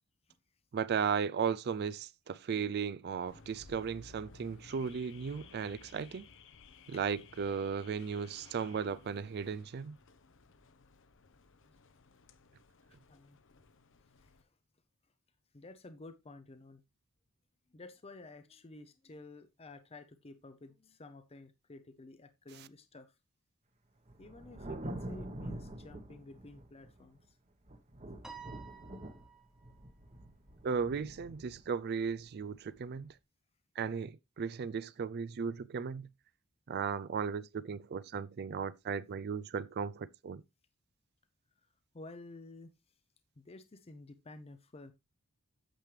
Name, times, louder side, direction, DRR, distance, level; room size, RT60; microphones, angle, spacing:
voice 1, 0.7-6.3 6.9-10.0 30.6-33.1 33.8-36.1 36.7-40.4, right 6 dB, 50° right, 0.4 m, -36 dB
Car / Alarm, 3.3-14.4, left 4 dB, 60° left, 0.9 m, -58 dB
voice 2, 12.9-13.4 14.2-14.5 15.5-16.8 17.7-23.1 24.2-27.4 41.9-42.7 43.4-44.9, left 2 dB, 25° left, 0.6 m, -52 dB
Thunder, 24.1-27.2 27.7-33.0, right 1 dB, 30° right, 1.1 m, -46 dB
Piano, 28.2-29.8, right 6 dB, 5° right, 1.1 m, -51 dB
8.9 x 7.4 x 3.3 m
head